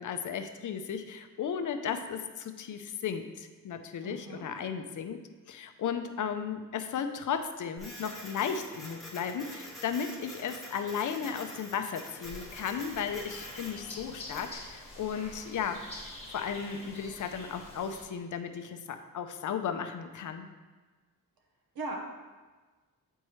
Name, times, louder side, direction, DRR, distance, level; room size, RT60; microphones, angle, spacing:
voice 1, 0.0-5.2 5.5-20.5, left 7 dB, 60° left, 8 dB, 0.6 m, -35 dB
voice 2, 4.0-4.4 21.7-22.0, right 3 dB, 85° right, 0 dB, 1.2 m, -38 dB
Printer, 7.8-14.5, equal, ahead, 1.6 m, -46 dB
sound 1, 12.2-18.0, left 2 dB, 15° left, 1.5 m, -46 dB
8.7 x 4.5 x 3.1 m, 1.3 s
wide cardioid pair, 130°, 35 cm